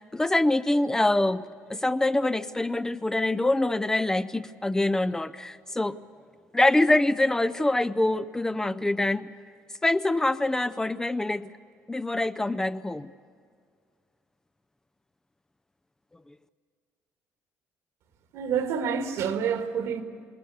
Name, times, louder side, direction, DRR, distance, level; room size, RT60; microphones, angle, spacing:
voice 1, 0.1-1.4 1.7-6.0 6.5-9.3 9.8-11.5 11.9-13.1, left 2 dB, 10° left, 11 dB, 0.5 m, -25 dB
voice 2, 18.3-20.0, right 7 dB, 75° right, 6 dB, 2.2 m, -28 dB
27.5 x 20.5 x 7.9 m, 2.1 s
cardioid pair, 110°, 5 cm